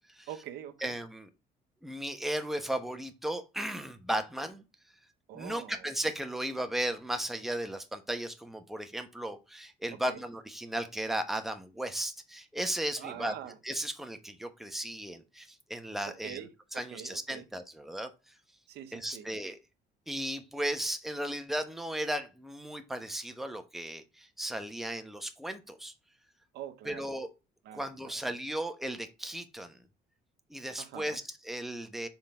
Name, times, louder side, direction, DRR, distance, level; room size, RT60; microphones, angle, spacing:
voice 1, 0.3-0.9 5.3-5.8 9.9-10.2 13.0-13.5 16.1-17.4 18.7-19.3 26.5-27.1 27.6-28.1 30.8-31.2, right 10 dB, 75° right, 0.8 m, -44 dB
voice 2, 0.8-1.3 1.8-4.6 5.3-13.3 13.6-16.4 16.7-18.3 18.9-19.6 20.1-25.9 26.8-27.3 27.7-29.8 30.5-32.1, right 1 dB, ahead, 0.9 m, -35 dB
5.5 x 3.9 x 4.4 m
cardioid pair, 110°, 17 cm